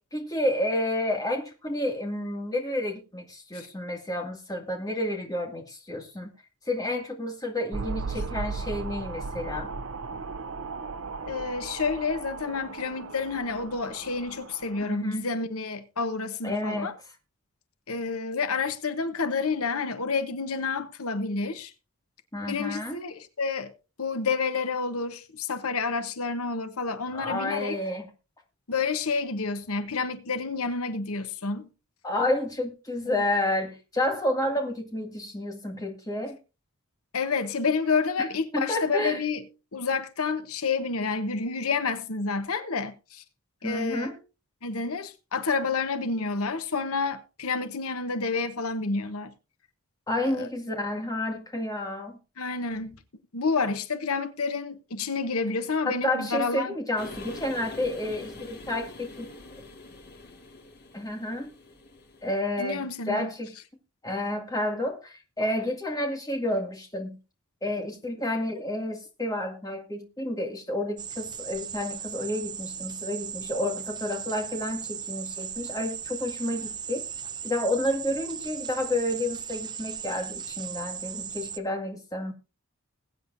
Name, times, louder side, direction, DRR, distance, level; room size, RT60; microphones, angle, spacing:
voice 1, 0.1-6.3 6.7-9.7 14.8-15.3 16.4-16.9 22.3-23.0 27.1-28.0 32.0-36.4 38.5-39.2 43.6-44.1 50.1-52.2 55.8-59.3 60.9-61.5 62.2-63.5 64.0-67.2 67.6-77.1 77.4-82.3, left 1 dB, 15° left, 2.1 m, -30 dB
sound 1, 7.7-14.9, right 4 dB, 65° right, 0.6 m, -36 dB
voice 2, 11.3-16.9 17.9-21.7 22.5-23.7 24.0-27.8 28.7-31.7 33.1-33.2 37.1-39.4 39.7-43.2 43.6-44.1 44.6-49.3 50.2-50.5 52.4-53.0 53.3-56.7 62.6-63.3, left 4 dB, 80° left, 1.0 m, -29 dB
sound 2, 57.0-62.4, left 2 dB, 45° left, 1.9 m, -44 dB
sound 3, 71.0-81.6, right 8 dB, 20° right, 0.5 m, -37 dB
21.0 x 8.6 x 2.6 m
head